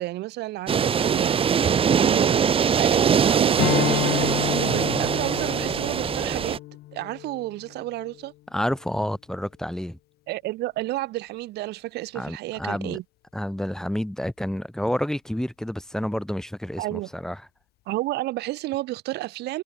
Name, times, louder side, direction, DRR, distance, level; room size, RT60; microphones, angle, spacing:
voice 1, 0.0-1.4 1.7-2.5 2.8-6.6 6.9-8.3 10.3-13.0 16.8-17.1 17.9-19.6, right 17 dB, 80° right, 1.1 m, -31 dB
sound 1, 0.7-6.6, right 7 dB, 35° right, 0.8 m, -22 dB
Strum, 3.6-8.3, left 17 dB, 70° left, 0.4 m, -30 dB
voice 2, 8.5-10.0 12.2-13.0 13.3-17.4, equal, 5° left, 1.7 m, -29 dB
cardioid pair, 110°, 17 cm